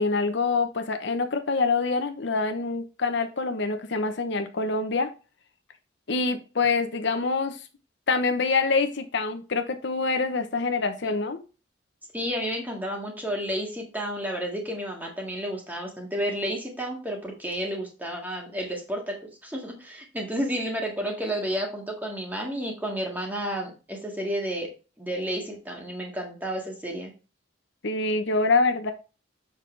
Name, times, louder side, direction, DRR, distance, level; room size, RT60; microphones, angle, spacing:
voice 1, 0.0-5.1 6.1-7.6 8.1-11.4 27.8-28.9, left 4 dB, 65° left, 7 dB, 0.8 m, -25 dB
voice 2, 12.1-24.7 25.0-27.1, equal, 10° right, 0 dB, 1.9 m, -31 dB
7.3 x 5.5 x 3.3 m, 0.32 s
head